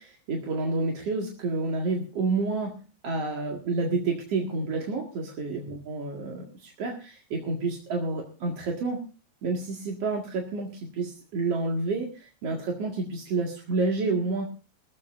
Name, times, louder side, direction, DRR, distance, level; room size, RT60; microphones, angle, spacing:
voice 1, 0.0-9.0 9.4-14.4, right 3 dB, 45° right, 0 dB, 2.3 m, -29 dB
20.0 x 14.5 x 2.6 m, 0.35 s
omnidirectional pair, 5.0 m